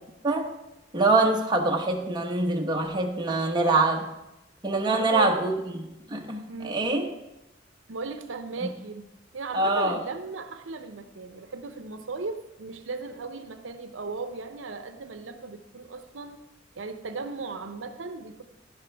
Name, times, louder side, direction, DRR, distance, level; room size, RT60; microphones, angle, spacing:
voice 1, 0.9-4.1 4.6-7.1 8.6-8.7 9.5-10.0, right 2 dB, 25° right, 1 dB, 1.1 m, -24 dB
voice 2, 4.9-5.3 6.5-6.8 7.9-9.1 9.3-16.4 16.8-18.4, right 4 dB, 85° right, 9 dB, 0.7 m, -36 dB
11.5 x 11.0 x 3.4 m, 0.91 s
head